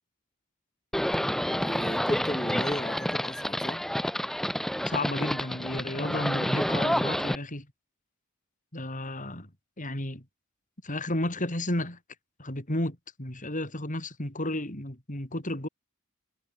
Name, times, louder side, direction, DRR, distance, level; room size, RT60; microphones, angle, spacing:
Livestock farm animals working animals, 0.9-7.3, equal, ahead, 0.7 m, -29 dB
voice 1, 1.4-3.8, left 1 dB, 20° left, 4.3 m, -35 dB
voice 2, 4.9-7.7 8.7-9.5 9.8-10.2 10.8-12.0 12.4-15.7, left 1 dB, 40° left, 5.7 m, -32 dB
head